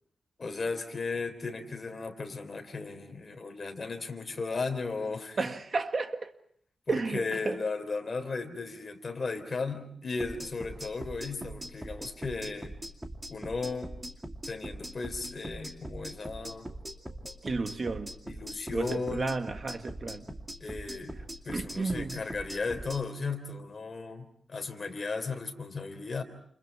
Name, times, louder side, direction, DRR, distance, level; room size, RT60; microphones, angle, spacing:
voice 1, 0.4-5.4 6.9-12.8 13.3-13.9 14.5-16.7 18.3-19.3 20.6-21.2 21.4-26.2, left 4 dB, 40° left, 3.6 m, -35 dB
voice 2, 5.4-6.3 6.9-7.6 17.4-18.1 18.7-20.3 21.5-22.2, right 3 dB, 45° right, 1.7 m, -32 dB
sound 1, 10.2-23.0, right 1 dB, 15° right, 2.4 m, -41 dB
29.5 x 28.5 x 4.7 m
wide cardioid pair, 120°, 0 cm